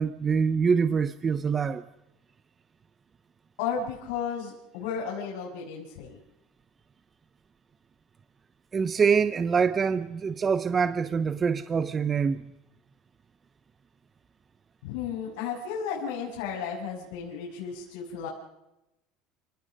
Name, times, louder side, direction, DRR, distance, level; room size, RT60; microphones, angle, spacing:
voice 1, 0.0-1.8 8.7-12.5, right 6 dB, 20° right, 13 dB, 0.7 m, -25 dB
voice 2, 3.6-6.2 14.8-18.3, left 7 dB, 85° left, -3 dB, 6.8 m, -33 dB
30.0 x 18.5 x 5.3 m, 0.90 s
cardioid pair, 165°, 0 cm